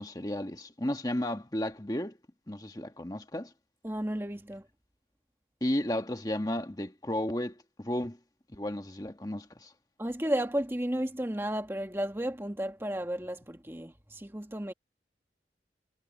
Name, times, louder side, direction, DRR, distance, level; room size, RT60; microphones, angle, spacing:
voice 1, 0.0-2.2 2.5-3.5 5.6-8.2 8.5-9.7, left 1 dB, 20° left, 1.3 m, -33 dB
voice 2, 3.8-4.7 10.0-14.7, right 1 dB, 15° right, 1.3 m, -33 dB
head